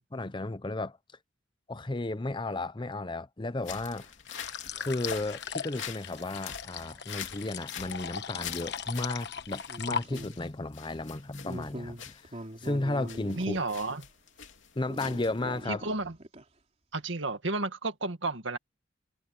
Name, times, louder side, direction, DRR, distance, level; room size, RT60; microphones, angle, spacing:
voice 1, 0.1-1.0 1.7-4.1 4.7-13.7 14.8-15.9, left 2 dB, 25° left, 0.7 m, -34 dB
sound 1, 3.6-15.6, left 8 dB, 75° left, 2.8 m, -45 dB
sound 2, 4.0-4.1 4.7-5.3 5.7-5.8 6.0-6.3 9.0-10.5 11.5-13.8 14.9-16.4, right 1 dB, 35° right, 3.7 m, -43 dB
sound 3, 4.3-10.5, left 6 dB, 60° left, 1.2 m, -38 dB
voice 2, 13.4-14.0 15.7-16.2 16.9-18.6, right 2 dB, 75° right, 2.0 m, -32 dB
head